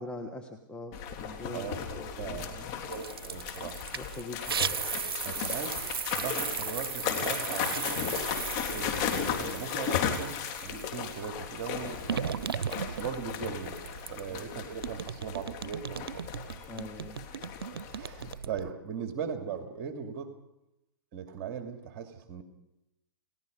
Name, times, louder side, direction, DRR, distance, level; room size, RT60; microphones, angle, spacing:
voice 1, 0.0-2.9 3.9-4.6 14.3-14.4 16.7-17.3, left 2 dB, 10° left, 5 dB, 1.4 m, -43 dB
sound 1, 0.9-18.3, left 8 dB, 40° left, 3.6 m, -36 dB
voice 2, 1.5-1.8 2.2-3.8 5.2-5.8 6.1-8.0 8.7-13.7 14.1-16.2 17.7-20.3 21.1-22.4, right 7 dB, 40° right, 5 dB, 2.6 m, -39 dB
sound 2, 2.9-11.1 11.6-14.5 14.8-18.7, right 7 dB, 85° right, 0.7 m, -37 dB
29.5 x 17.5 x 5.3 m, 0.89 s
hypercardioid pair, 135°, 12 cm